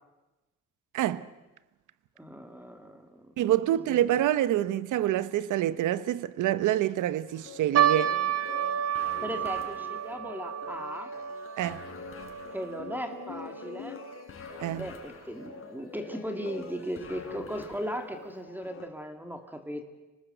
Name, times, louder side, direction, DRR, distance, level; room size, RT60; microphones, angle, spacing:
voice 1, 0.9-1.3 3.4-8.2 11.6-11.8 14.6-14.9, right 13 dB, 80° right, 0.9 m, -27 dB
voice 2, 2.2-3.3 9.2-11.1 12.5-14.0 14.8-19.8, equal, 5° right, 2.3 m, -37 dB
sound 1, 7.3-18.9, left 5 dB, 45° left, 4.3 m, -45 dB
sound 2, 7.8-14.2 14.5-14.6 15.4-15.6 16.3-16.4 16.7-16.9, right 10 dB, 55° right, 1.3 m, -31 dB
25.0 x 19.0 x 7.9 m
cardioid pair, 90°, 30 cm